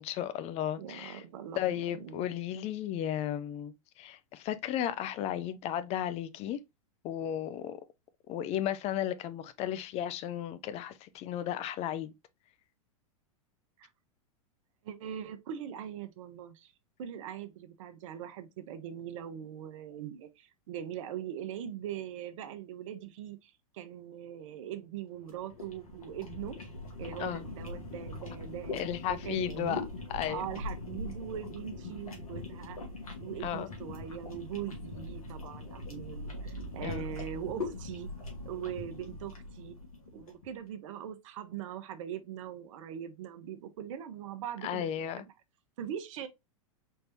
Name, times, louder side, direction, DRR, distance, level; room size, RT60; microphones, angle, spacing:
voice 1, 0.0-1.2 1.6-6.6 7.0-7.8 8.3-12.1 27.2-27.4 28.7-29.8 30.1-30.4 33.4-33.7 36.8-37.1 44.6-45.2, left 11 dB, 35° left, 0.5 m, -34 dB
voice 2, 0.8-2.3 13.8-13.9 14.8-16.7 17.0-26.6 27.0-29.9 30.3-32.8 33.2-38.2 38.4-39.8 40.1-45.3 45.8-46.3, right 10 dB, 65° right, 0.8 m, -41 dB
sound 1, 25.2-40.5, left 2 dB, 90° left, 1.8 m, -42 dB
4.4 x 3.3 x 2.7 m
hypercardioid pair, 105°, 18 cm